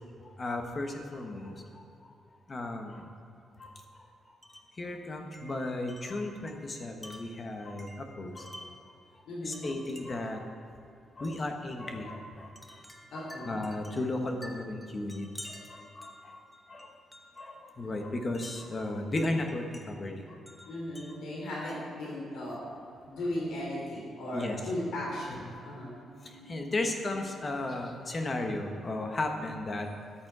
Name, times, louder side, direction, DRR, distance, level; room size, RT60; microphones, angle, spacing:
voice 1, 0.2-2.1 2.5-3.1 3.6-4.1 4.8-8.7 9.4-10.5 11.2-12.8 13.1-16.9 17.4-20.4 24.3-24.6 25.6-25.7 26.2-30.1, left 2 dB, 25° left, 3 dB, 1.1 m, -35 dB
Wind chime, 4.4-4.8 5.3-8.9 9.5-10.3 11.2-11.5 12.6-17.5 18.3-19.9 20.5-22.0, equal, 5° left, 0.9 m, -51 dB
voice 2, 9.3-9.7 13.1-13.6 20.7-22.6 23.0-25.9, left 1 dB, 80° left, -4 dB, 3.5 m, -36 dB
13.5 x 10.5 x 4.8 m, 2.7 s
wide cardioid pair, 175°, 0 cm